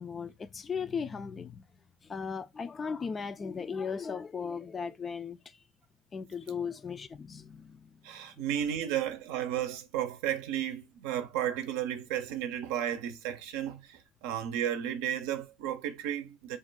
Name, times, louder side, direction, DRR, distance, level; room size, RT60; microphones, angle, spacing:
voice 1, 0.0-1.7 2.0-5.6 6.1-8.0 8.4-8.5 8.9-9.0, left 6 dB, 30° left, 0.3 m, -37 dB
voice 2, 8.0-16.6, right 10 dB, 75° right, 0.5 m, -33 dB
2.5 x 2.2 x 3.9 m
supercardioid pair, 95°, 0 cm